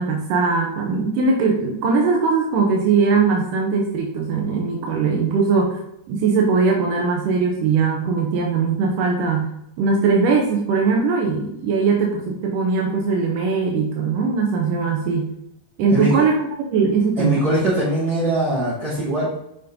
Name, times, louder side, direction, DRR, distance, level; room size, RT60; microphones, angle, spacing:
voice 1, 0.0-5.8 6.1-15.3 15.8-17.4, right 4 dB, 75° right, 0 dB, 2.0 m, -20 dB
voice 2, 15.9-16.2 17.2-19.4, right 1 dB, 35° right, -10 dB, 3.6 m, -21 dB
8.2 x 5.2 x 3.8 m, 0.80 s
omnidirectional pair, 5.0 m